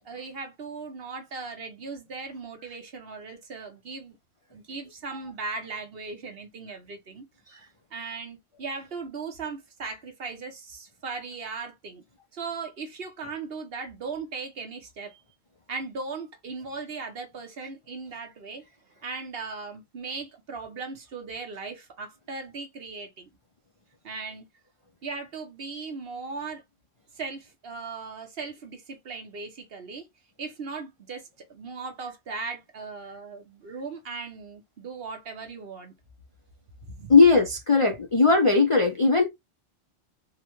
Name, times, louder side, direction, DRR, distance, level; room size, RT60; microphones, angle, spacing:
voice 1, 0.0-4.2 4.5-7.2 7.9-12.0 12.3-15.2 15.7-18.6 19.0-23.3 24.0-24.4 25.0-26.6 27.2-30.0 30.4-31.2 31.5-35.9 36.9-37.1, right 4 dB, 55° right, 1.1 m, -38 dB
voice 2, 37.1-39.3, left 4 dB, 40° left, 0.4 m, -19 dB
4.6 x 2.2 x 3.0 m
omnidirectional pair, 1.3 m